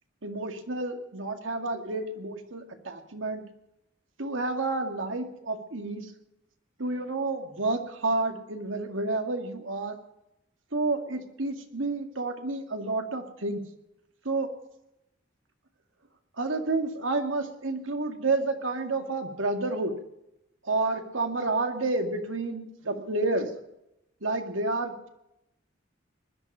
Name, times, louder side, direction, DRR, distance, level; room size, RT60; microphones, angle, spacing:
voice 1, 0.2-3.4 4.2-6.1 6.8-10.0 10.7-13.6 14.2-14.5 16.4-19.9 20.6-23.5 24.2-25.1, right 2 dB, 85° right, 5 dB, 2.1 m, -30 dB
20.0 x 11.5 x 5.6 m, 0.85 s
head